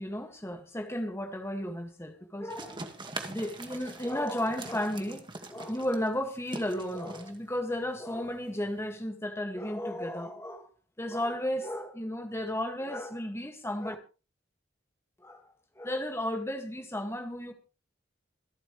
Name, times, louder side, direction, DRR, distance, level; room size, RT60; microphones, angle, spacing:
voice 1, 0.0-2.9 3.3-5.2 5.5-10.7 11.0-14.0 15.2-15.5 15.8-17.5, left 1 dB, 15° left, 2.1 m, -34 dB
sound 1, 2.5-8.9, right 2 dB, 25° right, 2.0 m, -43 dB
26.5 x 9.0 x 3.3 m
head